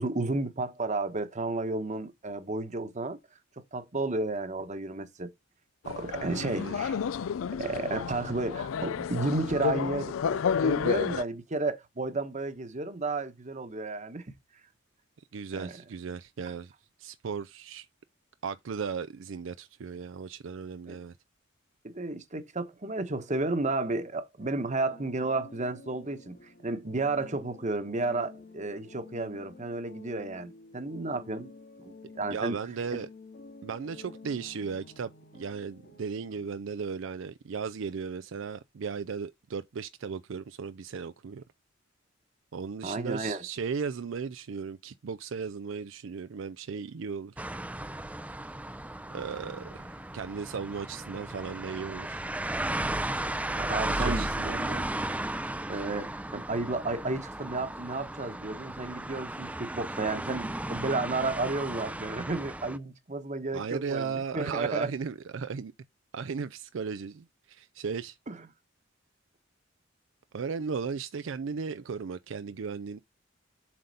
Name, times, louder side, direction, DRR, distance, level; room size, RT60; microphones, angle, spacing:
voice 1, 0.0-3.2 3.7-5.3 5.8-7.0 7.5-14.2 15.5-15.8 20.9-21.0 21.8-26.4 26.6-31.5 31.8-32.6 32.9-33.0 42.8-43.4 53.5-54.3 55.7-64.9 68.3-68.5, right 2 dB, 35° right, 1.1 m, -32 dB
sound 1, 5.8-11.2, left 7 dB, 85° left, 0.4 m, -31 dB
voice 2, 6.2-6.8 15.3-16.7 17.0-17.9 18.4-21.1 32.3-33.1 33.6-41.4 42.5-47.5 49.1-52.2 52.8-53.0 53.9-54.9 63.5-65.7 66.1-68.2 70.3-73.0, right 5 dB, 70° right, 0.4 m, -36 dB
sound 2, 24.4-36.6, left 3 dB, 55° left, 1.9 m, -51 dB
sound 3, 47.4-62.8, right 1 dB, 5° right, 0.5 m, -35 dB
7.7 x 3.9 x 5.4 m
head